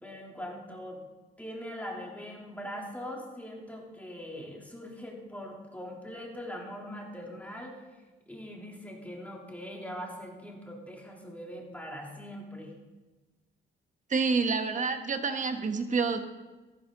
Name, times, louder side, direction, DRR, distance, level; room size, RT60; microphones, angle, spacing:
voice 1, 0.0-1.0 1.4-7.8 8.3-12.7, equal, 5° left, -2 dB, 3.4 m, -41 dB
voice 2, 14.1-16.2, right 4 dB, 40° right, 7 dB, 1.4 m, -28 dB
13.5 x 12.5 x 4.0 m, 1.2 s
cardioid pair, 90°, 20 cm